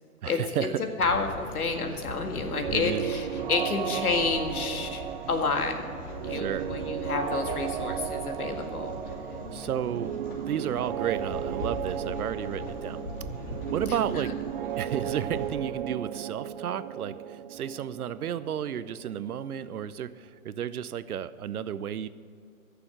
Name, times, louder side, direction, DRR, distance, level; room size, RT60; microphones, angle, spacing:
voice 1, 0.2-0.8 1.9-2.0 2.7-3.1 6.3-6.7 9.5-10.1 10.5-13.0 13.5-14.3 14.8-22.1, right 9 dB, 80° right, 15 dB, 0.7 m, -32 dB
voice 2, 1.0-5.0 5.3-5.7 6.2-9.0, left 4 dB, 80° left, 4 dB, 2.0 m, -29 dB
sound 1, 1.0-15.5, left 1 dB, 35° left, 2.8 m, -40 dB
sound 2, 2.4-20.1, right 10 dB, 40° right, 0.4 m, -35 dB
14.5 x 6.9 x 7.8 m, 2.3 s
hypercardioid pair, 135°, 44 cm